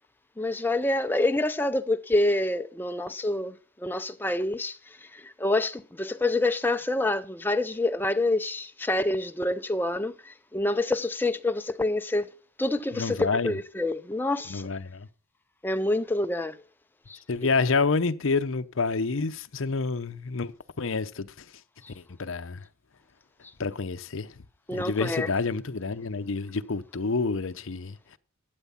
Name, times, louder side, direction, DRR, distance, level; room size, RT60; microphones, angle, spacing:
voice 1, 0.4-4.8 5.2-12.3 12.6-14.6 15.6-16.6 17.1-17.2 24.7-25.3, left 2 dB, 10° left, 0.5 m, -27 dB
voice 2, 12.9-13.6 14.5-15.1 17.3-21.3 22.0-22.6 23.6-24.3 24.7-28.0, left 4 dB, 60° left, 0.7 m, -28 dB
12.0 x 8.2 x 5.7 m
head